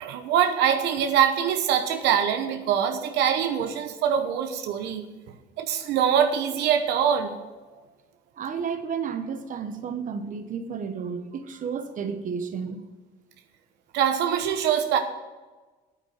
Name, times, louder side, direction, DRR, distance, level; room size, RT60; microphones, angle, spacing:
voice 1, 0.0-5.0 5.6-7.5 13.9-15.0, right 8 dB, 85° right, 6 dB, 1.0 m, -23 dB
voice 2, 8.4-12.8, right 6 dB, 50° right, 9 dB, 1.2 m, -32 dB
9.2 x 9.1 x 6.0 m, 1.3 s
cardioid pair, 110°, 17 cm